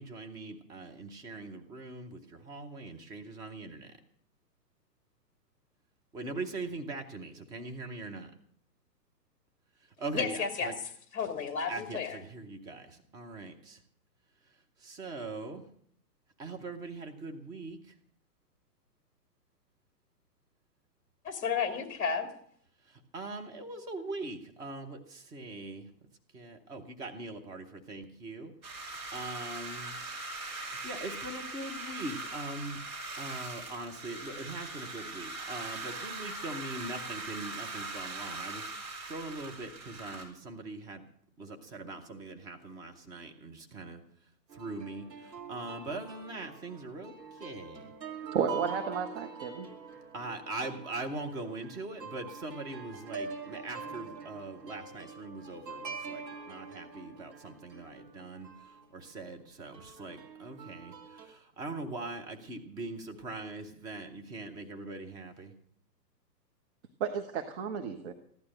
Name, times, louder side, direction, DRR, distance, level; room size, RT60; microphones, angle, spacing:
voice 1, 0.0-3.9 6.1-8.3 10.0-10.7 11.7-12.0 12.3-13.8 14.9-15.6 16.4-17.9 22.9-25.9 26.3-30.0 30.6-32.8 33.2-41.0 41.4-44.0 44.5-47.1 47.4-47.9 50.1-65.5, right 2 dB, 10° right, 5 dB, 0.7 m, -41 dB
voice 2, 10.1-10.7 11.1-12.1 21.2-22.3, left 6 dB, 15° left, 5 dB, 2.3 m, -32 dB
sound 1, 28.6-40.2, right 2 dB, 55° right, 5.5 m, -41 dB
sound 2, 44.5-58.9 59.7-61.3, right 5 dB, 75° right, 2.5 m, -45 dB
voice 3, 48.3-49.7 67.0-68.1, right 6 dB, 40° right, 7 dB, 1.3 m, -32 dB
15.5 x 11.5 x 6.5 m, 0.63 s
hypercardioid pair, 135°, 50 cm